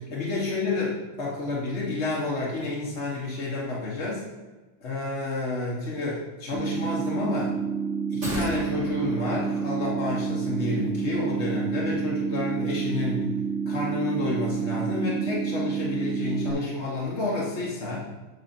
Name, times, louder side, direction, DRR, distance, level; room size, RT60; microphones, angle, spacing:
voice 1, 0.0-4.2 4.8-7.5 8.1-13.3 13.7-18.0, left 2 dB, 65° left, -5 dB, 1.7 m, -30 dB
sound 1, 6.5-16.5, right 6 dB, 35° right, 1.8 m, -29 dB
sound 2, 8.2-10.6 10.9-11.0, equal, 70° right, 1.9 m, -37 dB
8.6 x 5.2 x 4.4 m, 1.2 s
omnidirectional pair, 1.3 m